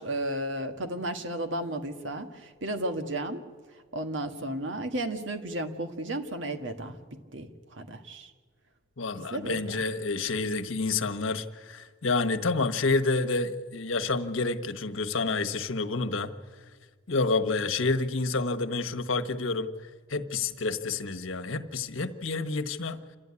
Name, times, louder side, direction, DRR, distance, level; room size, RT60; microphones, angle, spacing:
voice 1, 0.0-3.4 3.9-7.0 7.3-8.3 9.2-9.8, right 1 dB, 70° right, 6 dB, 1.8 m, -33 dB
voice 2, 9.0-16.3 17.1-19.7 20.1-23.0, left 3 dB, 85° left, 7 dB, 1.3 m, -29 dB
28.0 x 13.5 x 9.7 m, 1.5 s
head